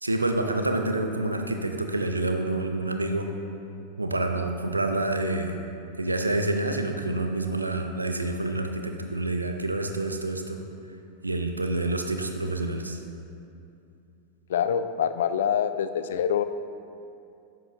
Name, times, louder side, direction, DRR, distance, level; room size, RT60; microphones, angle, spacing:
voice 1, 0.0-3.3 4.0-5.6 6.0-10.6 11.2-13.0, right 2 dB, 80° right, 5 dB, 0.5 m, -28 dB
voice 2, 14.5-16.4, left 8 dB, 60° left, 11 dB, 0.3 m, -25 dB
9.9 x 7.6 x 2.4 m, 2.6 s
figure-of-eight pair, 90°, 0 cm